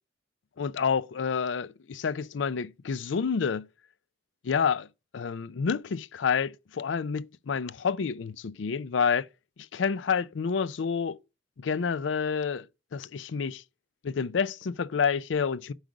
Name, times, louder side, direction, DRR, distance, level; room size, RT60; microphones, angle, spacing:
voice 1, 0.6-3.7 4.4-4.9 5.1-9.3 9.7-11.2 11.6-12.7 12.9-13.6 14.0-15.7, left 6 dB, 75° left, 0.4 m, -28 dB
7.8 x 4.8 x 4.8 m
head